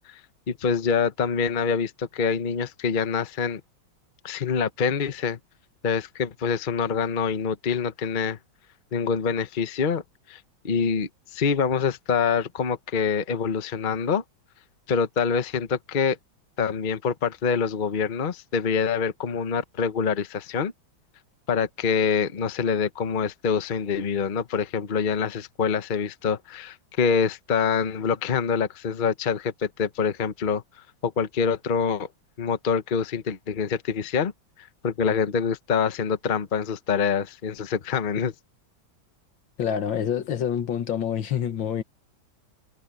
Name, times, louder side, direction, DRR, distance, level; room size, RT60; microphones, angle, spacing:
voice 1, 0.5-3.6 4.2-5.4 5.8-8.4 8.9-10.0 10.3-10.4 10.6-14.2 14.9-16.2 16.6-20.7 21.5-30.6 31.0-32.1 32.4-34.3 34.8-38.3, left 6 dB, 35° left, 0.8 m, -25 dB
voice 2, 39.6-41.8, left 8 dB, 75° left, 2.0 m, -27 dB
omnidirectional pair, 2.2 m